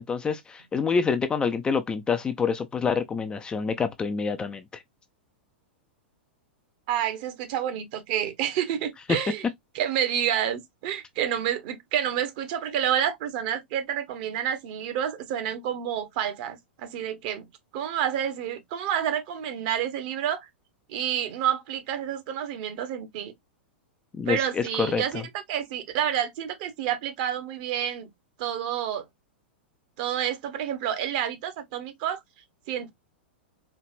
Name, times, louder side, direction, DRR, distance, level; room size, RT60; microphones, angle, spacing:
voice 1, 0.0-4.8 24.2-25.2, left 5 dB, 15° left, 0.5 m, -27 dB
voice 2, 6.9-9.4 9.7-17.5 17.7-20.5 20.9-23.3 24.3-28.1 28.4-29.1 30.0-32.2 32.7-32.9, right 10 dB, 45° right, 1.1 m, -29 dB
4.5 x 2.9 x 2.5 m
figure-of-eight pair, 100°, 6 cm